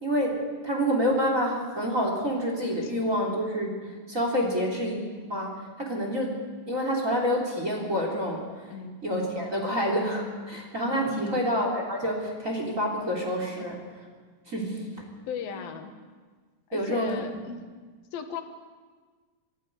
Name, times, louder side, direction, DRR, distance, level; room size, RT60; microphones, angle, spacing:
voice 1, 0.0-5.0 5.3-6.4 6.7-8.7 9.0-13.8 14.5-14.9 15.5-15.6 16.7-17.4, equal, 20° right, 0 dB, 3.4 m, -28 dB
voice 2, 11.0-11.4 13.6-13.7 15.3-15.9 16.7-17.6 18.1-18.4, left 7 dB, 80° left, 6 dB, 3.2 m, -36 dB
25.0 x 11.0 x 9.7 m, 1.5 s
omnidirectional pair, 4.2 m